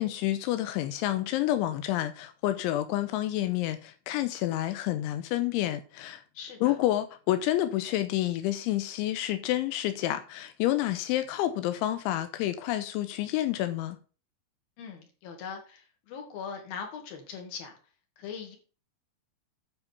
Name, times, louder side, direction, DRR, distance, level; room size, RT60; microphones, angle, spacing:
voice 1, 0.0-6.2 6.6-14.0, left 14 dB, 85° left, 3.1 m, -29 dB
voice 2, 6.3-6.8 14.8-17.7 18.2-18.6, left 6 dB, 55° left, 3.8 m, -41 dB
9.8 x 5.2 x 6.9 m
omnidirectional pair, 5.4 m